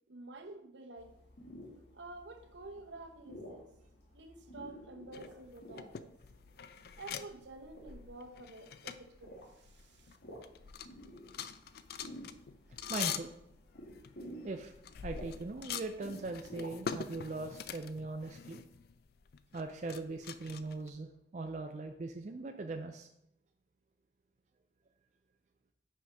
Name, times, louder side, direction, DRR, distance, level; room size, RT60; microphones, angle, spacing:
voice 1, 0.1-1.2 1.9-3.7 4.1-6.1 7.0-10.2, right 2 dB, 70° right, 0.8 m, -50 dB
sound 1, 1.0-17.1, equal, 70° left, 1.6 m, -52 dB
sound 2, 5.1-10.2 10.4-20.9, left 7 dB, 55° left, 0.3 m, -44 dB
voice 2, 12.9-13.3 14.4-14.7 15.0-18.6 19.5-23.1, right 3 dB, 40° right, 0.4 m, -40 dB
5.6 x 5.0 x 5.2 m
head